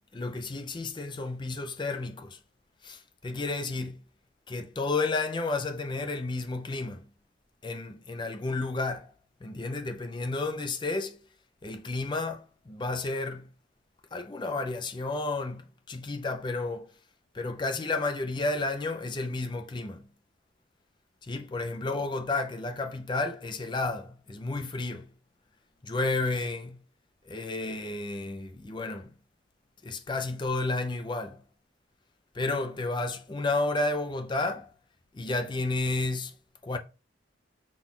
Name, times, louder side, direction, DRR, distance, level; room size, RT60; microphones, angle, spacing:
voice 1, 0.1-2.4 2.8-4.0 4.5-7.1 7.6-9.1 9.4-11.2 11.6-13.5 14.1-16.9 17.3-20.0 21.2-25.1 25.8-26.8 27.3-29.1 29.8-31.4 32.3-34.7 35.1-36.3 36.6-36.8, left 3 dB, 25° left, 0.4 m, -31 dB
6.1 x 2.3 x 3.7 m
head